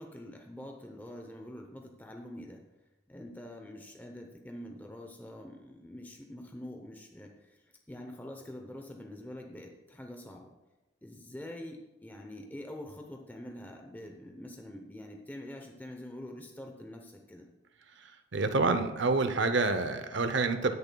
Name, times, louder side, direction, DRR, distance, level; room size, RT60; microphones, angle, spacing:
voice 1, 0.0-2.6 3.1-7.6 7.9-10.5 11.0-17.5, left 1 dB, 10° left, 2 dB, 0.7 m, -45 dB
voice 2, 18.3-20.8, right 3 dB, 60° right, 9 dB, 0.7 m, -27 dB
20.0 x 6.8 x 2.3 m, 1.0 s
head